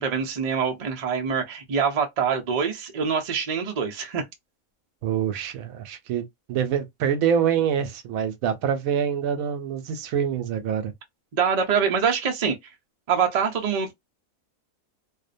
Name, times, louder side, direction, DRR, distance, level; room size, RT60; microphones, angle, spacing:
voice 1, 0.0-4.2 11.3-12.6 13.1-13.9, right 6 dB, 50° right, 0.4 m, -24 dB
voice 2, 5.0-10.9, right 8 dB, 85° right, 1.0 m, -25 dB
2.6 x 2.1 x 2.5 m
omnidirectional pair, 1.4 m